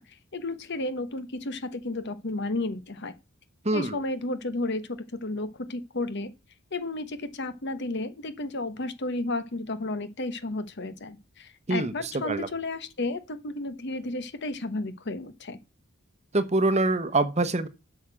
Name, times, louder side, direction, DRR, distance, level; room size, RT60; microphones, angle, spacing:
voice 1, 0.0-3.1 3.7-6.3 6.7-15.6, left 2 dB, 55° left, 1.1 m, -33 dB
voice 2, 3.6-4.0 11.7-11.9 12.2-12.5 16.3-17.7, right 2 dB, 30° right, 1.0 m, -24 dB
8.4 x 6.4 x 7.5 m
head